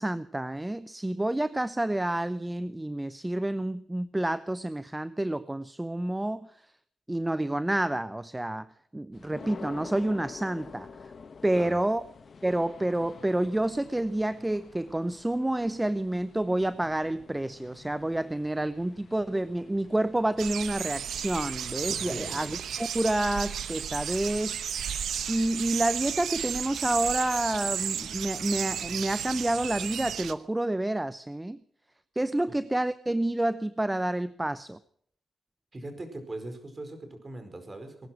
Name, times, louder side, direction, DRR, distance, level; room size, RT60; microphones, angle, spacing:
voice 1, 0.0-6.5 7.1-8.7 8.9-10.9 11.4-12.0 12.4-24.6 25.3-31.6 32.2-34.8, right 1 dB, 15° right, 14 dB, 0.7 m, -29 dB
sound 1, 9.1-22.6, left 5 dB, 50° left, 1.0 m, -48 dB
sound 2, 20.4-30.3, right 9 dB, 80° right, 0.8 m, -33 dB
voice 2, 22.0-22.3 35.7-38.1, right 2 dB, 30° right, 7 dB, 4.8 m, -40 dB
19.5 x 11.0 x 6.0 m, 0.66 s
cardioid pair, 65°, 0 cm